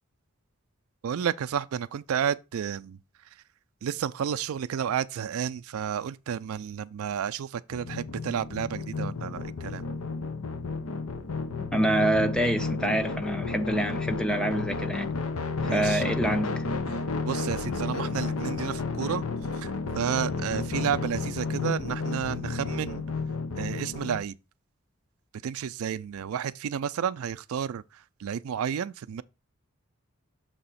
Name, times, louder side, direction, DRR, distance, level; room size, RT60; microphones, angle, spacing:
voice 1, 1.0-3.0 3.8-9.8 15.6-16.0 16.9-17.0 17.3-19.2 19.6-19.7 20.0-23.0 23.6-24.3 25.4-27.8 28.2-29.2, right 8 dB, 85° right, 0.4 m, -31 dB
sound 1, 7.7-24.2, left 4 dB, 90° left, 0.7 m, -32 dB
voice 2, 11.6-15.1 15.7-16.6, right 1 dB, 5° left, 0.5 m, -26 dB
6.8 x 2.9 x 5.6 m
head